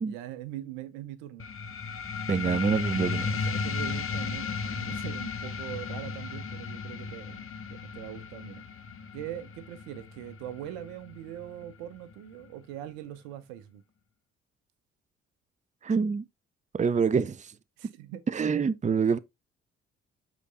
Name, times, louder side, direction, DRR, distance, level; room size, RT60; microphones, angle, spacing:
voice 1, 0.0-1.5 2.7-3.0 3.4-8.6 9.1-13.8 17.8-18.2, right 12 dB, 75° right, 0.9 m, -42 dB
sound 1, 1.4-12.4, left 5 dB, 40° left, 1.3 m, -35 dB
voice 2, 2.3-3.3 15.8-16.3 16.7-17.6 18.3-19.2, right 5 dB, 20° right, 0.7 m, -26 dB
8.3 x 4.2 x 3.7 m
hypercardioid pair, 45°, 33 cm